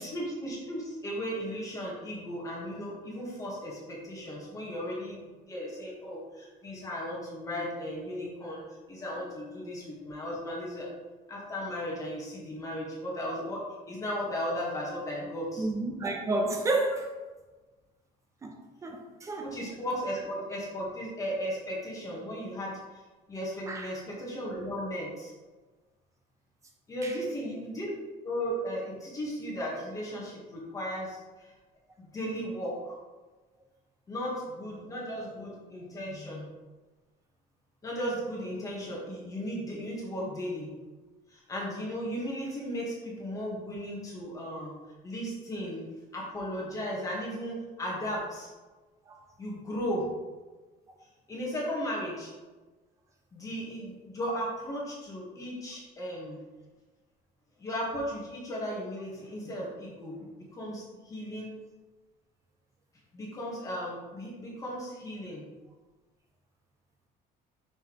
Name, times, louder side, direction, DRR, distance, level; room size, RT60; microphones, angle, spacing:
voice 1, 0.0-8.6 8.9-10.9 11.3-15.7 18.5-18.6 19.4-23.0 23.3-25.3 26.9-31.5 32.0-33.0 34.1-36.5 37.8-40.7 41.3-44.7 45.0-45.9 46.1-48.5 49.4-50.1 51.3-52.3 53.3-56.4 57.6-61.5 63.1-65.4, equal, 20° left, -4 dB, 1.2 m, -36 dB
voice 2, 15.6-17.1 18.4-18.6 18.8-19.5 23.7-23.9 27.0-27.2 49.1-49.2, right 2 dB, 20° right, 2 dB, 0.7 m, -31 dB
5.7 x 5.6 x 3.0 m, 1.2 s
cardioid pair, 175°, 17 cm